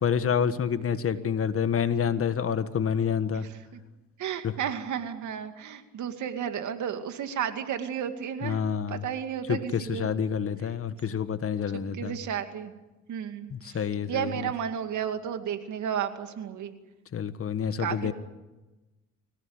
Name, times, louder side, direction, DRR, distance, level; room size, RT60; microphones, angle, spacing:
voice 1, 0.0-3.5 4.4-4.5 8.4-9.0 9.5-12.2 13.5-14.4 17.1-18.1, left 7 dB, 50° left, 11 dB, 1.6 m, -28 dB
voice 2, 3.3-3.8 4.2-8.6 8.9-10.1 11.9-12.7 13.1-13.8 14.1-16.7 17.8-18.1, right 8 dB, 75° right, 7 dB, 2.4 m, -33 dB
25.0 x 17.0 x 9.7 m, 1.1 s
cardioid pair, 90°, 30 cm